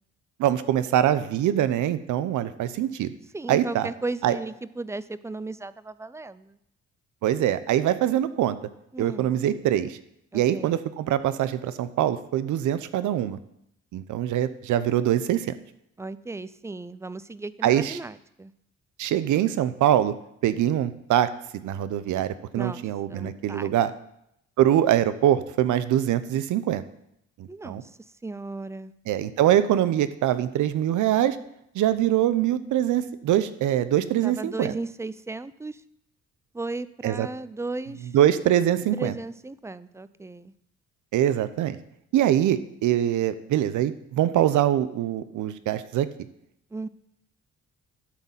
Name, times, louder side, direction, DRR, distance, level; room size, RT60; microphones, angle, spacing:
voice 1, 0.4-3.1 3.5-3.9 4.2-4.4 7.2-8.6 9.0-10.0 10.3-13.4 13.9-15.5 17.6-18.0 19.0-20.1 20.4-21.3 21.6-23.9 24.6-26.8 27.4-27.8 29.1-31.4 31.7-34.7 37.0-37.3 38.1-39.1 41.1-41.8 42.1-46.1, right 11 dB, 80° right, 14 dB, 0.7 m, -23 dB
voice 2, 3.3-6.6 8.9-9.3 10.3-10.8 16.0-18.5 22.5-22.8 23.1-23.7 27.5-27.9 28.2-28.9 34.2-35.8 36.5-38.1 38.9-40.5 46.7-46.9, right 3 dB, 10° right, 16 dB, 0.4 m, -35 dB
11.5 x 4.1 x 7.2 m, 0.77 s
cardioid pair, 90°, 30 cm